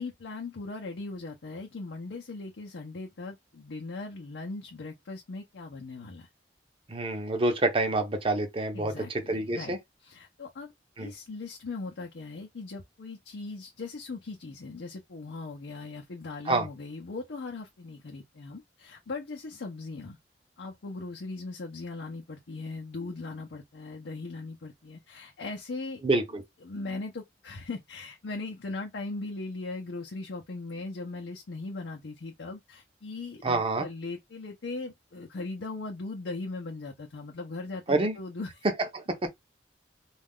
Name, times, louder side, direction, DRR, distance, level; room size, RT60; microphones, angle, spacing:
voice 1, 0.0-6.3 8.7-10.7 11.0-20.2 20.6-26.0 26.6-38.7, left 3 dB, 80° left, 0.6 m, -39 dB
voice 2, 6.9-9.8 11.0-11.1 16.5-16.7 26.0-26.4 33.4-33.9 37.9-38.2 38.9-39.3, right 2 dB, 30° right, 0.7 m, -27 dB
2.4 x 2.3 x 3.5 m
head